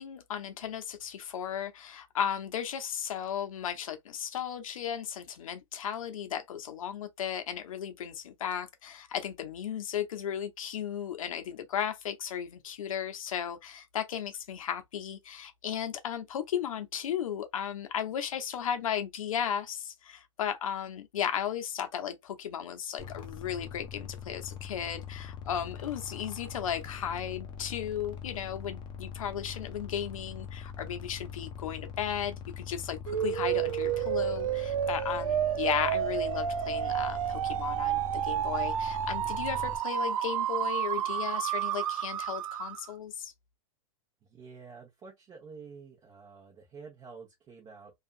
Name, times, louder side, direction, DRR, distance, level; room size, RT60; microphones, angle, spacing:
voice 1, 0.0-43.3, left 9 dB, 90° left, 0.7 m, -35 dB
sound 1, 23.0-39.8, left 7 dB, 25° left, 0.6 m, -42 dB
sound 2, 33.1-42.9, right 10 dB, 85° right, 0.4 m, -30 dB
voice 2, 44.2-47.9, right 5 dB, 25° right, 1.0 m, -49 dB
2.7 x 2.4 x 2.4 m
hypercardioid pair, 130°, 17 cm